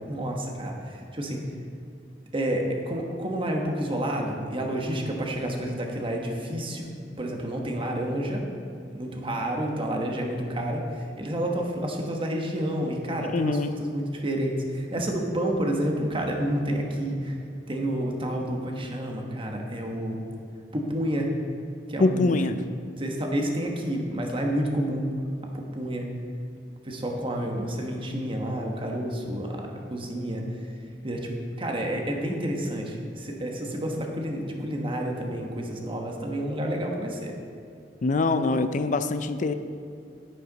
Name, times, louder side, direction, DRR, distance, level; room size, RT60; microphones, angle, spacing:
voice 1, 0.1-1.4 2.3-8.5 8.9-17.4 17.7-20.2 20.7-21.3 21.9-22.3 23.0-25.1 25.5-26.1 26.8-30.7 31.0-31.3 31.6-37.3, right 1 dB, 30° right, 1 dB, 1.2 m, -29 dB
voice 2, 13.3-13.7 22.0-22.6 38.0-39.5, left 3 dB, 45° left, 11 dB, 0.5 m, -24 dB
10.0 x 9.0 x 4.0 m, 2.5 s
head